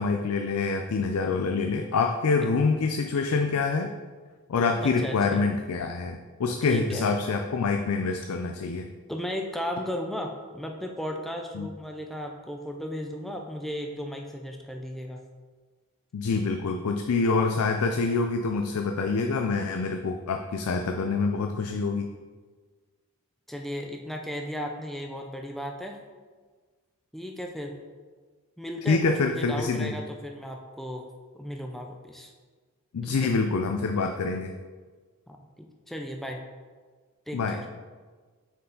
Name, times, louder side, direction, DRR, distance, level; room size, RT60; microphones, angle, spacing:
voice 1, 0.0-3.9 4.5-8.9 11.5-11.7 16.1-22.1 28.9-30.0 32.9-34.5 37.3-37.7, left 4 dB, 75° left, 4 dB, 0.4 m, -26 dB
voice 2, 4.8-5.4 6.6-7.1 9.1-15.2 23.5-26.0 27.1-27.7 28.6-31.1 31.3-32.3 33.1-33.3 35.3-36.4 37.3-37.7, equal, ahead, 2 dB, 0.4 m, -35 dB
6.5 x 4.7 x 3.9 m, 1.5 s
head